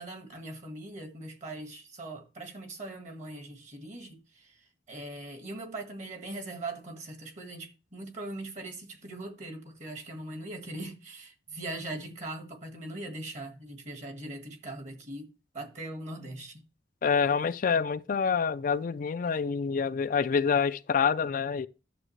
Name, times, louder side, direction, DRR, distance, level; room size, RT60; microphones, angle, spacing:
voice 1, 0.0-16.6, right 2 dB, 40° right, 1.7 m, -41 dB
voice 2, 17.0-21.7, left 6 dB, 45° left, 0.4 m, -27 dB
11.0 x 7.2 x 3.2 m
head